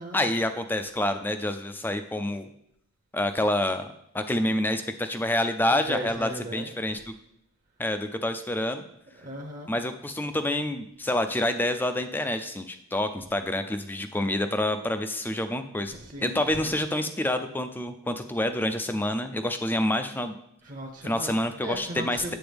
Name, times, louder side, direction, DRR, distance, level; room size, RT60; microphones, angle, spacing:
voice 1, 0.0-2.5 3.1-3.9 4.1-7.0 7.8-8.8 9.7-15.9 16.2-20.4 21.0-22.3, left 1 dB, 10° left, 8 dB, 0.4 m, -27 dB
voice 2, 5.6-6.7 9.1-9.7 15.9-16.8 20.6-22.3, right 1 dB, 40° right, 2 dB, 0.8 m, -38 dB
8.0 x 7.9 x 3.4 m, 0.75 s
head